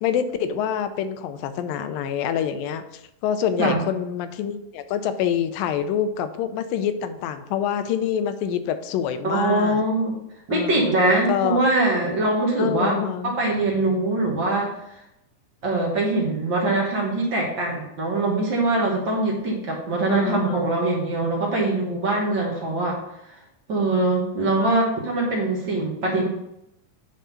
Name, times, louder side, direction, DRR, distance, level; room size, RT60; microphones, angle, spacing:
voice 1, 0.0-9.8 10.5-10.9 11.3-11.6 12.6-13.3 20.1-20.7 24.6-24.8, left 8 dB, 85° left, 10 dB, 2.4 m, -26 dB
voice 2, 9.2-10.2 10.5-12.9 13.2-14.8 15.6-23.0 23.7-26.3, right 2 dB, 55° right, -2 dB, 1.3 m, -23 dB
9.0 x 3.8 x 5.7 m, 0.84 s
omnidirectional pair, 4.0 m